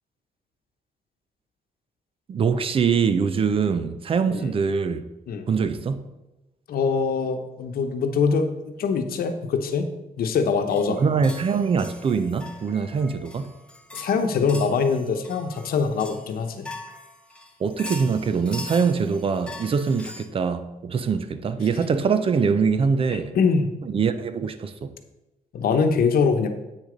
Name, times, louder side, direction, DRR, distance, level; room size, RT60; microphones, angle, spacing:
voice 1, 2.3-5.0 5.5-6.1 10.9-13.5 17.6-23.4 23.8-24.9, right 5 dB, 40° right, 0.5 m, -23 dB
voice 2, 6.7-9.9 10.2-11.0 13.9-16.7 23.3-23.7 25.5-26.5, left 5 dB, 80° left, 1.0 m, -23 dB
sound 1, 10.7-20.3, left 2 dB, 5° left, 0.7 m, -42 dB
8.3 x 6.7 x 5.1 m
wide cardioid pair, 180°, 15 cm